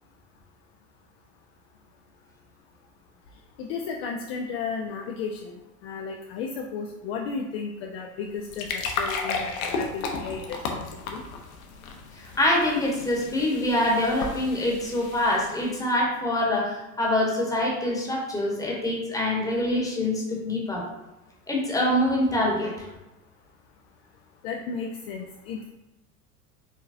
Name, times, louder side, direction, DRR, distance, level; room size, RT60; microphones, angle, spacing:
voice 1, 3.6-11.2 24.4-25.7, left 5 dB, 45° left, 2 dB, 0.5 m, -34 dB
sound 1, 8.2-15.8, left 4 dB, 60° left, 0.9 m, -34 dB
voice 2, 12.2-20.8 21.5-22.9, left 1 dB, 5° left, -2 dB, 1.1 m, -25 dB
4.9 x 3.8 x 2.6 m, 0.97 s
figure-of-eight pair, 85°, 47 cm